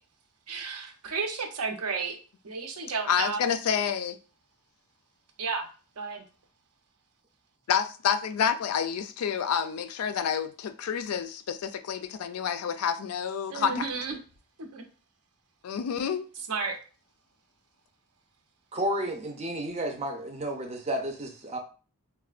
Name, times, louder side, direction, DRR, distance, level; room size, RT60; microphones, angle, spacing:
voice 1, 0.5-2.1 2.4-3.4 5.4-5.7 6.0-6.2 13.5-14.2 14.7-14.8 16.5-16.7, right 4 dB, 80° right, 0.7 m, -32 dB
voice 2, 3.1-4.2 7.7-13.9 15.6-16.3, left 7 dB, 75° left, 0.3 m, -28 dB
voice 3, 18.7-21.6, right 1 dB, 30° right, 0.5 m, -32 dB
4.1 x 2.1 x 2.4 m
head